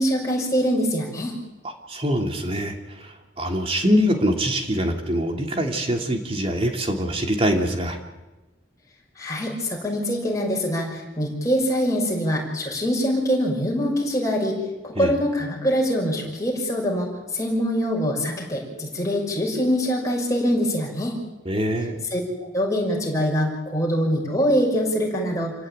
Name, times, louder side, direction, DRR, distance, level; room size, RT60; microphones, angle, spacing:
voice 1, 0.0-1.3 9.2-14.5 14.8-21.2 22.1-22.2 22.5-25.5, equal, 20° left, -2 dB, 6.5 m, -24 dB
voice 2, 1.9-8.0 14.9-15.1 21.4-22.0, equal, 30° right, 3 dB, 2.9 m, -24 dB
27.5 x 16.5 x 9.0 m, 1.1 s
head